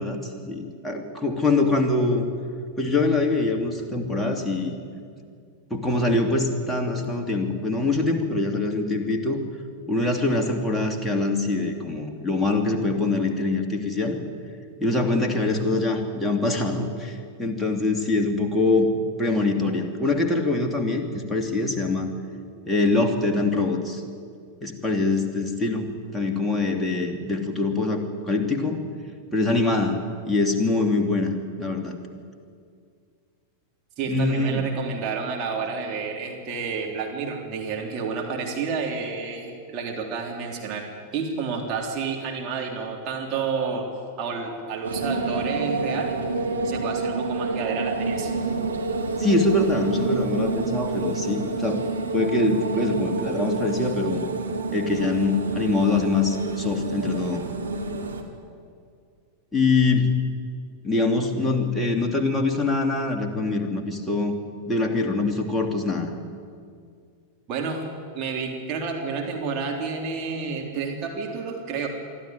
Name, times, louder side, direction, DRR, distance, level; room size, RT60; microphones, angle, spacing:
voice 1, 0.0-2.3 2.8-4.8 5.7-9.4 9.9-14.2 14.8-22.1 22.7-24.0 24.6-25.9 26.1-28.8 29.3-31.3 31.6-32.0 34.1-34.7 49.2-51.8 52.1-54.2 54.7-57.4 59.5-60.1 60.8-64.3 64.7-66.1, left 2 dB, 5° left, 1 dB, 2.8 m, -24 dB
voice 2, 34.0-40.9 41.1-43.9 44.2-46.2 46.6-48.3 67.5-67.9 68.1-71.9, right 5 dB, 35° right, 0 dB, 3.5 m, -30 dB
sound 1, 44.8-58.2, right 3 dB, 75° right, 2.3 m, -28 dB
24.0 x 13.5 x 10.0 m, 2.2 s
figure-of-eight pair, 90°, 0 cm